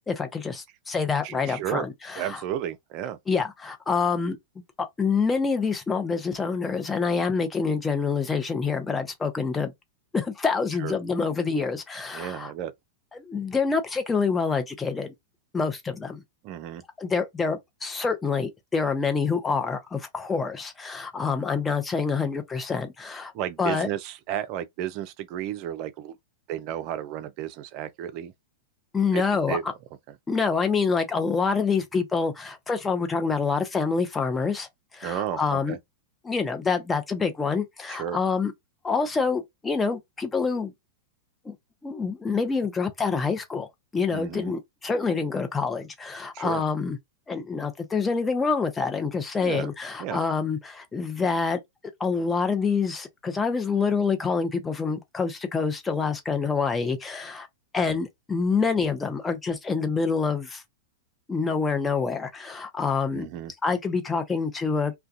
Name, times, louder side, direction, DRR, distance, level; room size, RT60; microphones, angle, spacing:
voice 1, 0.1-2.4 3.3-4.4 4.8-9.7 10.1-12.5 13.1-15.1 15.5-16.2 17.0-23.3 23.6-23.9 28.9-29.7 30.3-34.7 34.9-35.8 36.2-38.5 38.8-40.7 41.4-41.5 41.8-43.7 43.9-47.0 47.3-51.6 52.0-57.5 57.7-60.6 61.3-63.3 63.6-64.9, left 5 dB, 15° left, 0.6 m, -26 dB
voice 2, 1.2-1.9 2.2-3.2 10.8-10.9 12.1-12.7 16.4-16.8 23.3-26.2 26.5-28.3 29.1-29.6 35.0-35.8 37.9-38.2 44.1-44.5 46.3-46.6 49.4-49.7 50.0-50.2 63.1-63.5, right 11 dB, 45° right, 0.4 m, -33 dB
2.3 x 2.2 x 2.5 m
hypercardioid pair, 100°, 0 cm